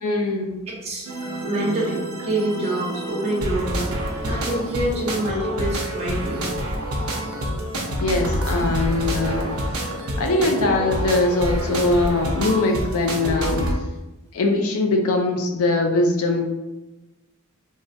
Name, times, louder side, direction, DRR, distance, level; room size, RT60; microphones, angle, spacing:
voice 1, 0.0-0.6 8.0-9.5 10.2-13.7 14.3-16.5, left 2 dB, 75° left, 3 dB, 0.4 m, -21 dB
voice 2, 0.7-3.9 4.2-6.4, right 1 dB, 30° right, -6 dB, 1.0 m, -26 dB
sound 1, 1.0-13.7, equal, 80° right, 0.6 m, -27 dB
3.6 x 2.0 x 2.5 m, 1.1 s
head